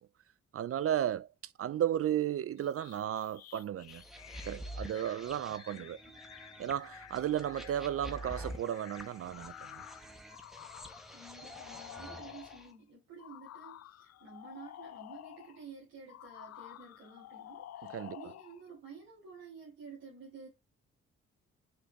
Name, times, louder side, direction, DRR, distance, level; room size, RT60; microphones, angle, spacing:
voice 1, 0.5-1.3 1.6-4.0 4.4-6.0 6.6-9.5 17.9-18.2, right 10 dB, 45° right, 0.4 m, -34 dB
sound 1, 2.6-12.7 13.2-15.6 16.1-18.6, left 13 dB, 50° left, 0.4 m, -51 dB
sound 2, 3.9-12.7, equal, ahead, 1.5 m, -48 dB
voice 2, 11.1-20.5, right 5 dB, 80° right, 3.1 m, -51 dB
6.3 x 4.9 x 3.0 m
hypercardioid pair, 45°, 34 cm